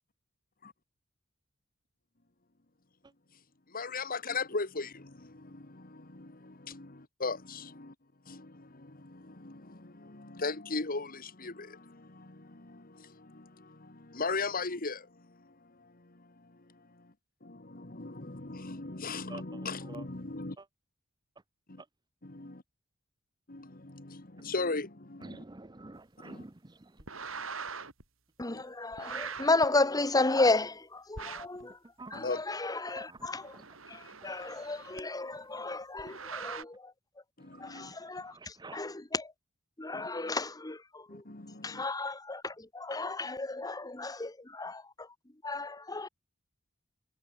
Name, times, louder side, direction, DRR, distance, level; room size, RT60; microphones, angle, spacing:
voice 1, 3.7-7.9 8.2-17.1 17.4-20.6 21.7-21.8 22.2-22.6 23.5-25.4 26.2-26.4 28.5-28.6 32.1-32.4 37.4-37.9 39.9-40.1 41.1-41.8, left 3 dB, 45° left, 2.0 m, -39 dB
voice 2, 19.3-20.0 20.6-20.7 25.2-27.0 31.6-32.2 33.0-33.3 33.5-33.7 34.2-34.3 35.3-35.6 37.5-38.8, right 2 dB, 20° right, 0.8 m, -49 dB
sound 1, 27.0-28.0 28.9-29.7 31.2-31.6 33.2-35.0 36.0-36.6, right 5 dB, 75° right, 7.1 m, -42 dB
voice 3, 28.4-31.8 32.1-33.6 33.9-36.9 37.6-39.3 39.8-41.2 41.6-45.1 45.4-46.1, left 3 dB, 20° left, 1.2 m, -33 dB
head